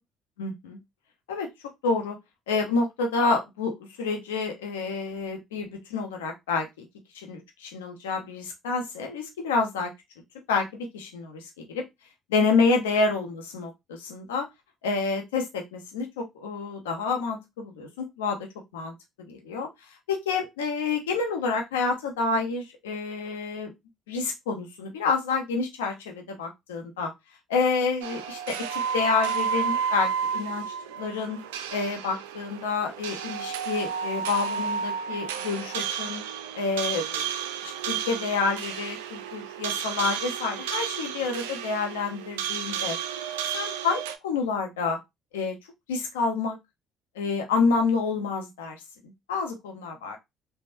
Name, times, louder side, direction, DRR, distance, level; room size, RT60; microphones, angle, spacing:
voice 1, 0.4-0.8 1.3-1.5 1.8-2.2 2.5-6.9 7.1-9.9 10.5-11.8 12.3-14.5 14.8-18.4 18.7-19.7 20.1-23.7 24.1-27.1 27.5-30.7 30.9-31.4 31.7-36.2 36.5-37.2 37.6-43.0 43.5-45.0 45.3-45.6 45.9-46.6 47.2-50.2, left 4 dB, 90° left, 3 dB, 0.7 m, -28 dB
sound 1, 28.0-44.1, right 7 dB, 85° right, 0.3 m, -32 dB
3.4 x 2.1 x 2.5 m, 0.19 s
hypercardioid pair, 55°, 0 cm